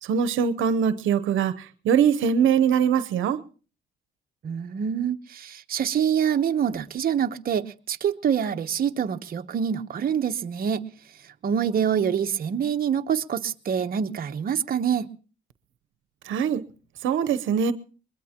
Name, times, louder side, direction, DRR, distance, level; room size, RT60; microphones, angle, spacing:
voice 1, 0.0-3.4 16.2-16.6 17.0-17.7, right 7 dB, 80° right, 0.9 m, -22 dB
voice 2, 4.4-10.9 11.2-15.1, right 8 dB, 50° right, 0.9 m, -26 dB
22.0 x 21.5 x 2.9 m
cardioid pair, 90°, 20 cm